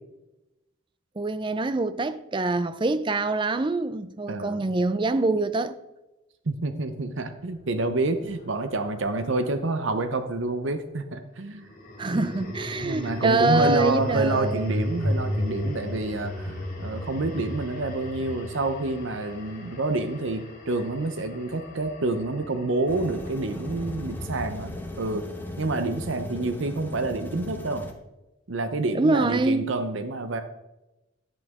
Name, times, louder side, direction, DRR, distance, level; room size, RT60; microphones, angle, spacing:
voice 1, 1.2-5.8 12.0-14.8 28.9-29.7, right 2 dB, 25° right, 0.4 m, -25 dB
voice 2, 4.3-4.7 6.5-11.7 12.1-12.2 12.8-24.7 25.0-25.3 25.6-27.8 28.5-30.4, right 2 dB, 60° right, 0.7 m, -28 dB
sound 1, 7.5-10.0 11.6-23.9, left 1 dB, 40° left, 2.2 m, -35 dB
sound 2, 22.9-27.9, left 1 dB, 10° left, 0.9 m, -37 dB
10.5 x 8.5 x 3.6 m
head